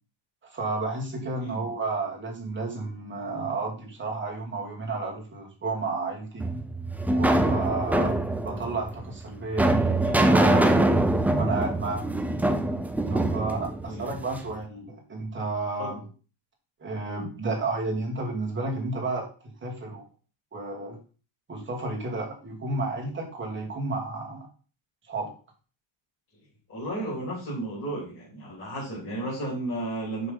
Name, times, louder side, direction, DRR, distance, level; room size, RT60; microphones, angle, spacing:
voice 1, 0.4-6.5 7.1-10.9 11.4-12.0 13.1-16.0 16.8-19.3 19.6-20.0 20.5-21.0 21.5-24.5 25.1-25.3, right 3 dB, 25° right, -1 dB, 2.2 m, -31 dB
voice 2, 1.4-1.7 13.8-14.1 15.8-16.0 26.7-30.3, right 1 dB, 30° left, -5 dB, 3.3 m, -33 dB
sound 1, 6.4-14.5, right 1 dB, 5° right, 0.3 m, -24 dB
6.1 x 5.5 x 5.2 m, 0.37 s
cardioid pair, 165°, 47 cm